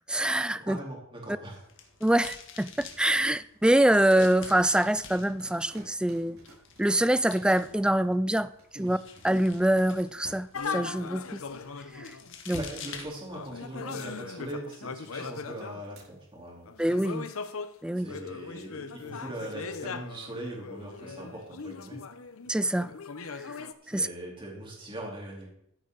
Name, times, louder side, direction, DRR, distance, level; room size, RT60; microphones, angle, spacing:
voice 1, 0.1-0.8 2.0-6.4 6.8-8.5 8.8-9.0 9.2-11.4 12.0-12.1 12.5-12.6 16.8-17.3 17.8-18.1 22.5-22.9 23.9-24.1, right 1 dB, 5° right, 0.3 m, -25 dB
voice 2, 0.6-1.6 8.7-9.0 12.5-16.7 18.0-22.0 23.8-25.5, right 1 dB, 25° right, 3.7 m, -41 dB
sound 1, 1.4-13.8, left 6 dB, 60° left, 1.7 m, -49 dB
sound 2, 4.4-8.0 8.4-10.4 12.5-13.9 16.0-16.1, right 1 dB, 85° right, 5.2 m, -51 dB
sound 3, 10.5-12.3 13.3-15.9 16.7-23.7, left 5 dB, 85° left, 0.9 m, -39 dB
15.0 x 8.8 x 4.0 m
head